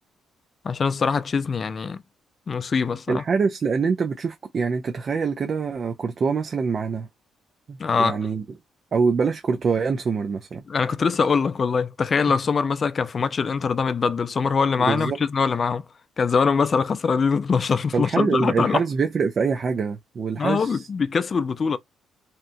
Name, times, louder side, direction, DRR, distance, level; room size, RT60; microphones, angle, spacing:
voice 1, 0.6-2.0 2.5-3.2 7.8-8.2 10.7-15.8 16.2-18.8 20.4-21.8, left 5 dB, 40° left, 0.3 m, -23 dB
voice 2, 3.1-7.1 7.7-8.4 8.9-10.6 14.8-15.2 17.9-20.9, right 5 dB, 45° right, 0.4 m, -24 dB
2.8 x 2.2 x 2.5 m
cardioid pair, 90°, 0 cm